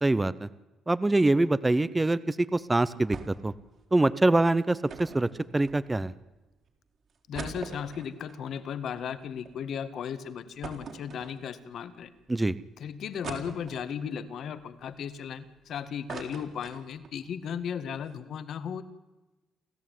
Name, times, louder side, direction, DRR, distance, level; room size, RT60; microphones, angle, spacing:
voice 1, 0.0-0.5 0.9-3.5 3.9-5.3 5.5-6.1 12.3-12.5, right 2 dB, 15° right, 17 dB, 0.8 m, -24 dB
sound 1, 3.1-3.5 3.8-3.9 4.9-6.1 6.7-6.8 7.1-9.5 9.9-10.0 10.6-11.8 12.3-12.4 13.2-14.1 14.6-15.6 15.9-17.2 17.5-17.6 17.9-18.1, right 5 dB, 55° right, 4.5 m, -43 dB
voice 2, 7.3-12.1 12.8-18.8, left 7 dB, 65° left, 12 dB, 1.8 m, -36 dB
29.0 x 14.0 x 9.4 m, 1.1 s
cardioid pair, 90°, 0 cm